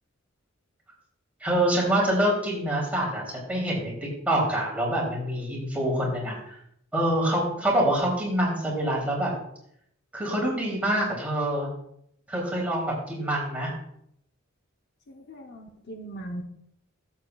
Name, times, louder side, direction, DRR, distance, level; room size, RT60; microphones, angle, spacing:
voice 1, 1.4-3.9 4.3-6.4 6.9-9.3 10.1-11.7 12.3-13.7, right 1 dB, 5° right, -3 dB, 2.9 m, -26 dB
voice 2, 15.1-16.4, right 1 dB, 55° left, 3 dB, 0.8 m, -39 dB
14.0 x 7.1 x 2.3 m, 0.72 s
head